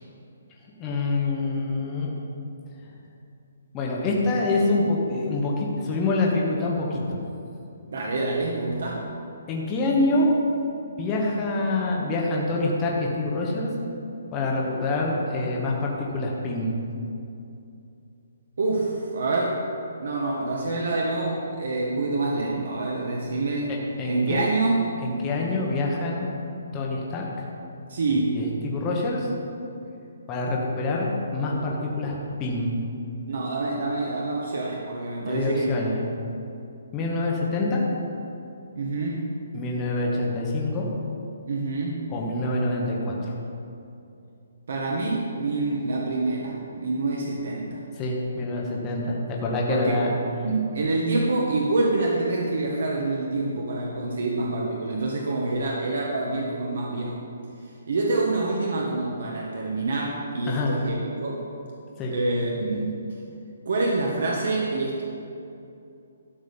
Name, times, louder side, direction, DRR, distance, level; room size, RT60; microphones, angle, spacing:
voice 1, 0.8-2.1 3.7-7.0 9.5-10.3 11.0-13.7 14.3-16.7 23.7-24.4 25.0-26.3 26.7-27.4 28.1-29.3 30.3-32.1 32.4-32.8 35.3-36.0 36.9-37.8 39.5-40.9 42.1-43.1 48.0-50.1 60.5-60.8 62.0-62.1, left 2 dB, 15° left, -2 dB, 1.1 m, -26 dB
voice 2, 7.9-9.1 18.6-19.6 20.0-23.7 24.0-24.9 27.9-28.5 33.3-35.8 38.7-39.3 41.5-42.1 44.7-47.8 49.7-49.9 50.4-57.3 57.9-61.5 62.1-62.8 63.6-65.0, right 2 dB, 60° right, -2 dB, 1.4 m, -26 dB
12.5 x 5.2 x 7.0 m, 2.7 s
hypercardioid pair, 175°, 0 cm